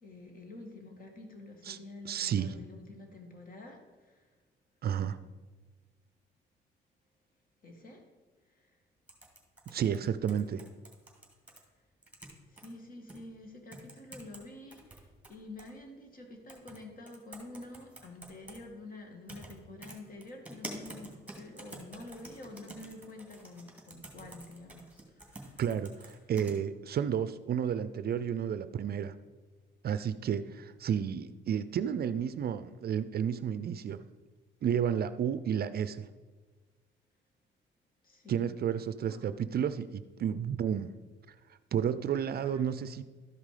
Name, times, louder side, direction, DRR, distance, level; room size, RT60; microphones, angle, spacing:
voice 1, 0.0-3.8 4.1-4.2 7.6-8.0 8.6-8.7 12.5-24.9 25.1-25.6 38.0-38.5 39.1-39.3 42.5-42.6, left 2 dB, 45° left, 3 dB, 2.1 m, -48 dB
voice 2, 2.0-2.6 4.8-5.2 9.7-10.6 25.6-29.1 29.8-34.0 34.6-36.1 38.3-40.9 41.7-43.0, right 8 dB, 50° right, 14 dB, 0.5 m, -31 dB
sound 1, 9.1-11.6 12.0-12.7 13.1-13.2 13.7-14.4 14.7-15.7 16.5-16.8 17.1-18.6 19.3-19.5 19.8-26.5, right 2 dB, 5° right, 2.3 m, -47 dB
12.5 x 5.2 x 4.9 m, 1.3 s
cardioid pair, 90°, 20 cm